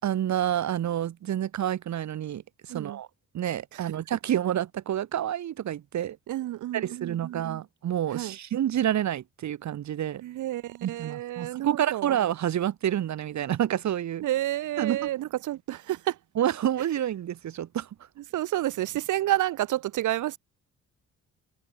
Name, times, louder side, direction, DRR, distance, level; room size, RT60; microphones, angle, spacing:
voice 1, 0.0-3.1 3.3-6.2 6.7-10.2 10.8-14.2 14.8-15.1 16.4-17.9, right 11 dB, 65° right, 3.4 m, -28 dB
voice 2, 6.3-7.6 8.1-8.4 10.2-12.2 14.2-16.2 18.3-20.4, right 14 dB, 85° right, 3.0 m, -30 dB
cardioid pair, 90°, 30 cm